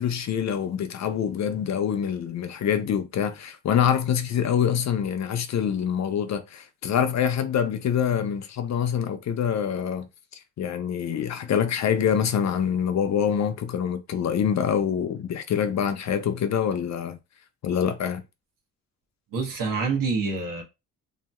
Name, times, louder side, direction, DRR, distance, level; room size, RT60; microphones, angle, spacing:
voice 1, 0.0-10.1 10.3-17.2 17.6-18.2, left 8 dB, 50° left, 0.5 m, -25 dB
voice 2, 19.3-20.6, right 4 dB, 60° right, 1.1 m, -26 dB
2.7 x 2.7 x 2.2 m
hypercardioid pair, 50°, 36 cm